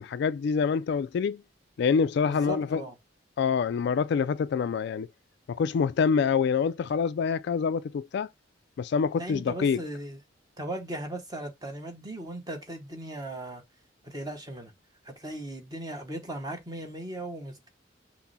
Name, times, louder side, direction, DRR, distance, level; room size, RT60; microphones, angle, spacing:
voice 1, 0.0-1.4 1.8-2.8 3.4-5.1 5.5-8.3 8.8-9.8, left 6 dB, 60° left, 0.3 m, -26 dB
voice 2, 2.2-2.9 9.1-10.2 10.6-13.6 14.0-14.7 15.0-17.7, right 1 dB, 20° right, 1.0 m, -37 dB
5.9 x 2.1 x 4.1 m
head